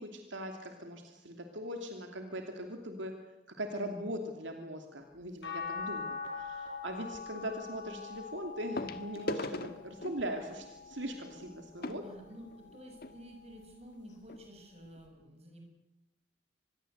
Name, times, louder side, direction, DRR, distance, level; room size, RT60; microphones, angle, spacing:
voice 1, 0.0-3.1 3.6-12.0, equal, 75° right, 4 dB, 2.8 m, -40 dB
sound 1, 5.2-5.5 7.1-7.2 8.8-13.2 13.9-14.0 14.2-14.4 15.0-15.1, left 2 dB, 50° left, 1.6 m, -42 dB
sound 2, 5.4-11.7 12.3-13.6 15.1-15.2, left 5 dB, 70° left, 6.4 m, -44 dB
voice 2, 12.0-15.6, equal, 35° right, 3 dB, 6.8 m, -51 dB
25.5 x 21.0 x 8.1 m, 0.92 s
head